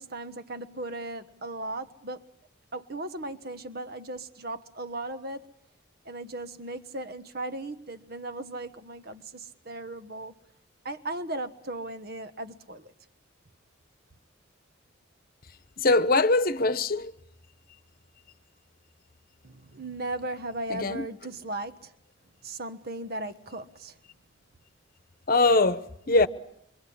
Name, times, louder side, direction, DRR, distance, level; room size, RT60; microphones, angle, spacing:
voice 1, 0.0-2.3 2.7-5.5 6.0-10.3 10.8-12.9 19.4-21.9 22.4-24.0, right 2 dB, 50° right, 1.3 m, -37 dB
voice 2, 15.8-17.1 20.7-21.0 25.3-26.3, left 3 dB, 45° left, 1.1 m, -22 dB
27.0 x 24.5 x 8.6 m
head